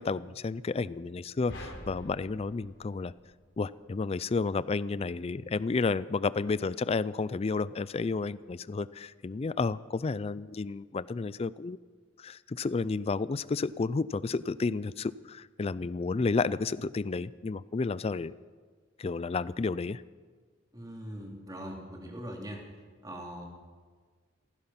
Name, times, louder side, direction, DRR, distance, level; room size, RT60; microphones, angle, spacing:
voice 1, 0.0-3.1 3.6-11.8 12.2-18.3 19.0-20.0, left 4 dB, 30° left, 18 dB, 0.4 m, -31 dB
sound 1, 1.5-3.9, equal, 75° left, 3.5 m, -46 dB
voice 2, 20.7-22.6 23.0-23.5, equal, 20° right, 0 dB, 3.0 m, -41 dB
16.0 x 16.0 x 5.7 m, 1.5 s
head